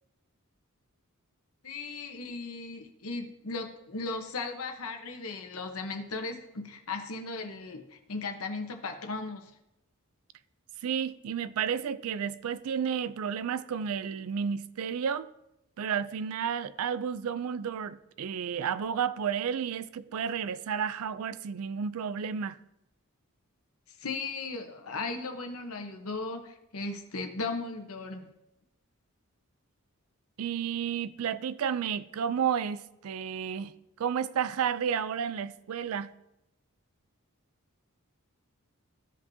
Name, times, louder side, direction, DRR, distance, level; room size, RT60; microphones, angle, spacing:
voice 1, 1.6-9.5 24.0-28.3, left 3 dB, 75° left, 1.0 m, -37 dB
voice 2, 10.8-15.3 15.8-22.6 30.4-33.7 34.0-36.1, right 7 dB, 75° right, 0.4 m, -31 dB
15.0 x 5.4 x 2.7 m
head